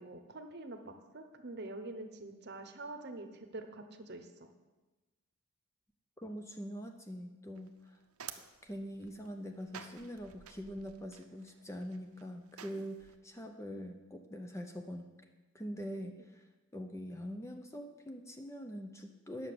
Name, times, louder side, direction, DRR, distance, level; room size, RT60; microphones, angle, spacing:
voice 1, 0.0-4.5, right 2 dB, 50° right, 7 dB, 0.9 m, -46 dB
voice 2, 6.2-8.0 8.6-15.1 15.5-16.4 16.7-19.5, equal, 10° left, 5 dB, 0.5 m, -44 dB
sound 1, 7.5-13.2, right 8 dB, 80° right, 0.7 m, -52 dB
9.7 x 6.9 x 6.8 m, 1.2 s
head